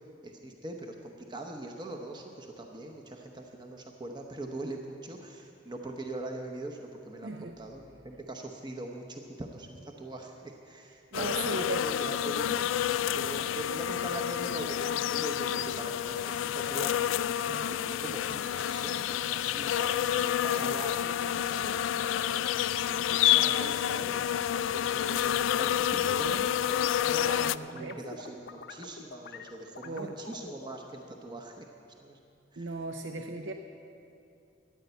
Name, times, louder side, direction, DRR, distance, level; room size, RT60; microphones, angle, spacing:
voice 1, 0.2-12.5 13.0-21.0 21.4-22.5 22.8-26.5 27.7-31.7 32.0-32.2 32.5-32.7, right 2 dB, 25° right, 2 dB, 0.9 m, -42 dB
voice 2, 7.2-7.6 11.1-11.8 12.4-12.6 17.4-17.8 27.1-28.0 29.8-30.2 32.6-33.5, right 3 dB, 70° right, 5 dB, 0.7 m, -37 dB
sound 1, 11.1-27.6, left 10 dB, 85° left, 0.3 m, -29 dB
sound 2, 26.6-30.8, left 4 dB, 60° left, 0.7 m, -46 dB
13.5 x 9.8 x 8.0 m, 2.6 s
head